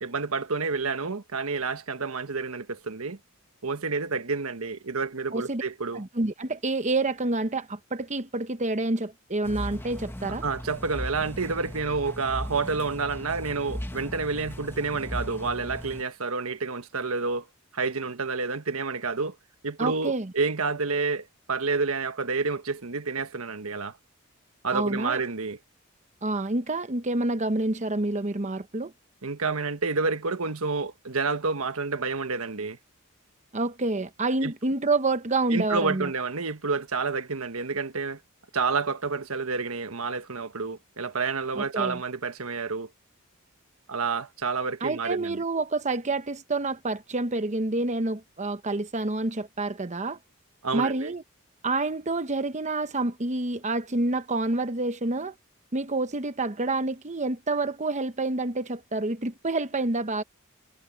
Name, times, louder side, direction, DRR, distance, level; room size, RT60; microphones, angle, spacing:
voice 1, 0.0-3.2 3.6-6.0 10.4-17.5 17.7-19.3 19.6-23.9 24.6-25.6 29.2-32.8 34.4-34.5 35.5-38.2 38.5-42.9 43.9-45.4 50.6-51.1, right 4 dB, 85° right, 1.4 m, -29 dB
voice 2, 5.3-5.6 5.9-10.4 19.8-20.3 24.7-25.2 26.2-28.9 33.5-36.1 41.6-42.0 44.8-50.2 50.7-51.2 51.6-55.3 55.7-60.2, right 2 dB, 35° right, 1.1 m, -28 dB
sound 1, 9.4-16.0, equal, 10° left, 1.2 m, -37 dB
head